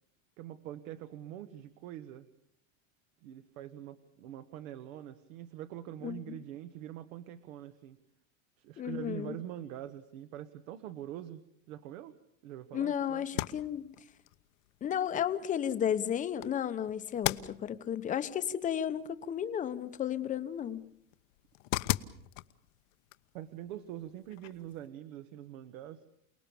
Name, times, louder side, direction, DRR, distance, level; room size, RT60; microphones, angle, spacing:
voice 1, 0.4-2.3 3.2-8.0 8.6-12.1 12.4-13.4 23.3-26.0, right 12 dB, 70° right, 11 dB, 1.5 m, -44 dB
voice 2, 6.0-6.4 8.8-9.3 12.7-13.9 14.8-20.9, left 9 dB, 20° left, 11 dB, 0.9 m, -33 dB
sound 1, 13.2-24.9, left 18 dB, 65° left, 1.0 m, -41 dB
28.5 x 19.0 x 7.0 m, 0.73 s
supercardioid pair, 160°, 41 cm